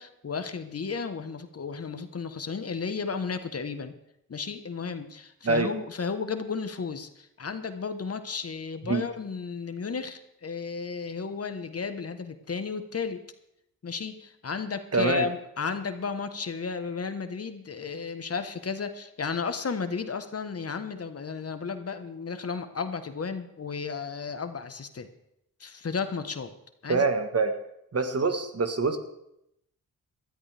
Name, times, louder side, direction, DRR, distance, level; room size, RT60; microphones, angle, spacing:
voice 1, 0.0-3.9 4.3-13.2 13.8-25.1 25.6-26.5 26.8-27.0, left 5 dB, 45° left, 9 dB, 1.2 m, -33 dB
voice 2, 14.9-15.3 26.9-27.6 27.9-29.0, right 4 dB, 45° right, 8 dB, 1.4 m, -25 dB
19.0 x 13.0 x 3.4 m, 0.80 s
cardioid pair, 70°, 35 cm